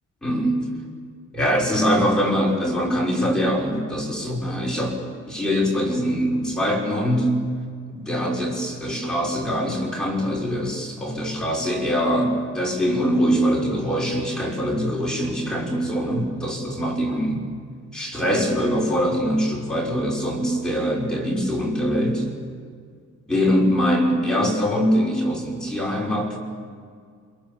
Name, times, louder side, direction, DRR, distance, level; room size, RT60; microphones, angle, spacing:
voice 1, 0.2-0.6 1.3-5.0 5.3-7.4 7.9-17.4 17.9-22.2 23.3-26.4, equal, ahead, -3 dB, 6.3 m, -23 dB
28.0 x 28.0 x 7.3 m, 2.1 s
cardioid pair, 125°, 30 cm